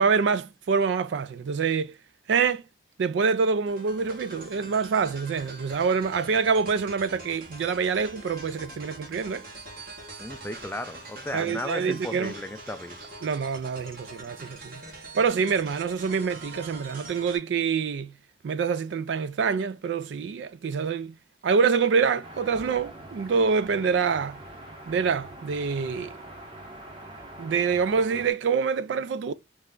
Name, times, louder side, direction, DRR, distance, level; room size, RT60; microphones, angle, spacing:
voice 1, 0.0-1.9 2.3-2.6 3.0-9.4 11.3-12.3 13.2-14.8 15.2-18.1 18.4-21.1 21.4-24.4 24.9-26.2 27.4-29.3, right 5 dB, 70° right, 0.3 m, -26 dB
sound 1, 3.7-17.4, right 2 dB, 50° right, 1.4 m, -44 dB
voice 2, 10.2-13.0, left 1 dB, 10° left, 0.4 m, -35 dB
sound 2, 22.2-28.3, right 1 dB, 25° right, 1.0 m, -44 dB
3.3 x 3.2 x 3.6 m
head